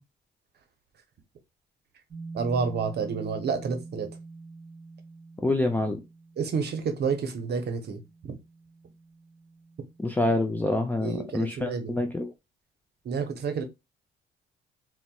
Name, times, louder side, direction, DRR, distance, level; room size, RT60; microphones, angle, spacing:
sound 1, 2.1-11.6, right 3 dB, 25° right, 1.7 m, -46 dB
voice 1, 2.3-4.1 6.4-8.0 8.3-8.4 11.0-11.9 13.0-13.6, right 5 dB, 55° right, 0.8 m, -29 dB
voice 2, 5.4-6.0 10.0-12.3, left 2 dB, 10° left, 0.4 m, -26 dB
4.1 x 2.1 x 2.3 m
cardioid pair, 90°, 20 cm